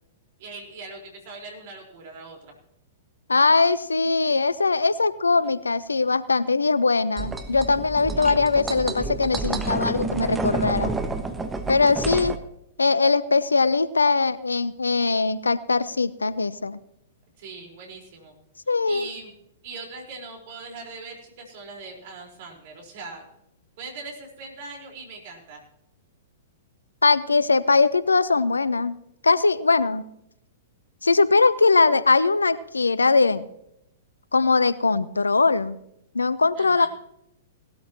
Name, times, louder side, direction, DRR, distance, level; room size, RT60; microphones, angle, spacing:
voice 1, 0.4-2.4 8.1-8.3 12.1-12.3 17.4-18.3 18.9-19.3 19.6-23.2 23.8-25.6 36.6-36.9, right 3 dB, 50° right, 1 dB, 4.3 m, -40 dB
voice 2, 3.3-10.9 11.7-12.4 12.8-16.8 18.7-19.1 27.0-29.0 29.2-30.1 31.0-33.5 34.3-35.8 36.1-36.9, left 4 dB, 80° left, 17 dB, 0.6 m, -21 dB
sound 1, 7.2-12.4, right 3 dB, 10° right, 1.2 m, -29 dB
18.5 x 13.0 x 3.0 m, 0.78 s
figure-of-eight pair, 105°, 0 cm